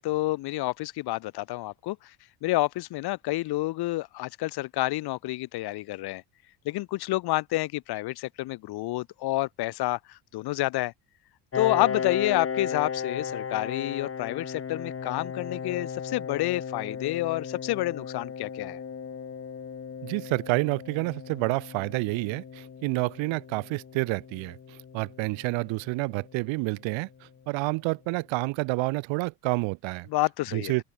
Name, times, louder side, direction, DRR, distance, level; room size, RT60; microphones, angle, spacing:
voice 1, 0.0-2.1 2.4-6.2 6.6-10.9 11.5-18.8 30.1-30.8, left 18 dB, 55° left, 0.8 m, -29 dB
Piano, 11.5-26.9, left 6 dB, 30° left, 2.8 m, -36 dB
voice 2, 20.0-24.6 24.9-27.1 27.5-30.1 30.5-30.8, right 26 dB, 75° right, 1.7 m, -29 dB
open air
supercardioid pair, 95°, 47 cm